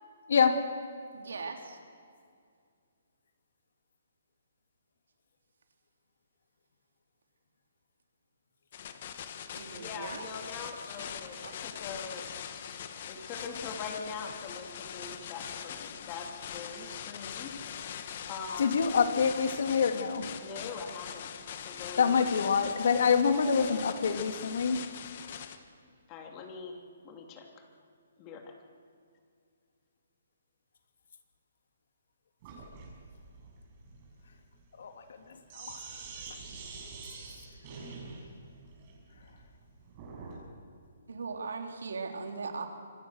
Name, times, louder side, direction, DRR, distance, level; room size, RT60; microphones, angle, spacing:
voice 1, 0.3-0.6 18.6-20.2 22.0-24.8 34.8-35.9, left 6 dB, 60° left, 6 dB, 2.8 m, -26 dB
voice 2, 1.1-1.8 9.5-10.3 10.6-11.0 11.4-11.5 41.1-42.7, right 4 dB, 85° right, 4 dB, 3.7 m, -39 dB
sound 1, 8.7-25.6, left 8 dB, 40° left, 1.6 m, -42 dB
voice 3, 9.7-12.8 13.1-17.6 18.3-18.7 20.4-21.3 21.6-22.5 26.1-26.8 27.0-27.7 28.2-28.5, left 5 dB, 20° left, 3 dB, 2.8 m, -42 dB
Sink (filling or washing), 32.4-40.4, right 4 dB, 30° right, 6.4 m, -46 dB
26.0 x 25.0 x 6.6 m, 2.2 s
hypercardioid pair, 170°, 0 cm